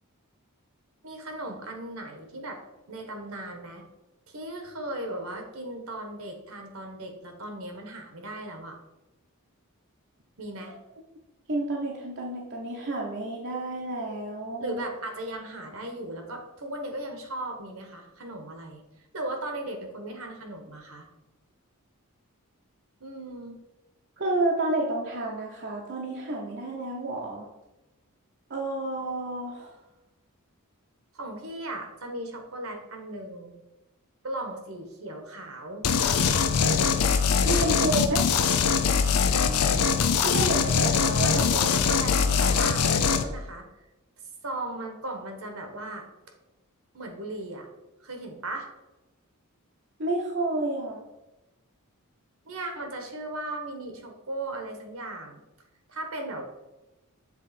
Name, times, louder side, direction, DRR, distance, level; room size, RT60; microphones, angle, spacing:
voice 1, 1.0-2.6 2.9-3.8 4.3-8.8 10.4-10.8 14.6-18.8 19.1-21.1 23.0-23.6 31.1-33.5 34.2-35.9 37.6-38.2 40.4-40.9 41.2-42.9 43.2-43.6 44.4-46.1 46.9-47.7 48.0-48.7 52.4-55.4 55.9-56.4, right 1 dB, 70° right, 4 dB, 1.2 m, -37 dB
voice 2, 11.5-14.8 24.2-27.5 28.5-29.8 37.4-38.3 40.2-40.7 41.0-41.5 50.0-51.0, right 2 dB, 50° right, -2 dB, 0.8 m, -30 dB
sound 1, 35.8-43.2, left 6 dB, 90° left, 0.6 m, -22 dB
7.4 x 3.7 x 4.2 m, 0.98 s
head